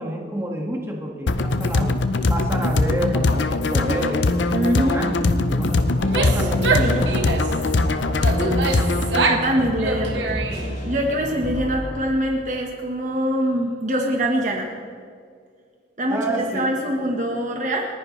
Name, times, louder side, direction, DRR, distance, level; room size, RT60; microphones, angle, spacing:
voice 1, 0.0-2.0 2.3-4.4 4.7-5.1 5.5-7.2 16.1-16.7, right 1 dB, 15° right, -1 dB, 1.8 m, -28 dB
sound 1, 1.3-9.3, left 2 dB, 80° left, 0.7 m, -21 dB
voice 2, 4.5-5.4 6.8-6.9 8.3-8.6 9.1-10.4 10.8-14.7 16.0-17.9, equal, 45° right, 0 dB, 1.3 m, -24 dB
sound 2, 5.5-11.9, equal, 50° left, 4.0 m, -30 dB
Female speech woman speaking / Yell, 6.0-7.6 8.2-9.5 9.8-10.8, right 4 dB, 80° right, 1.5 m, -25 dB
29.5 x 10.0 x 3.3 m, 2.2 s
head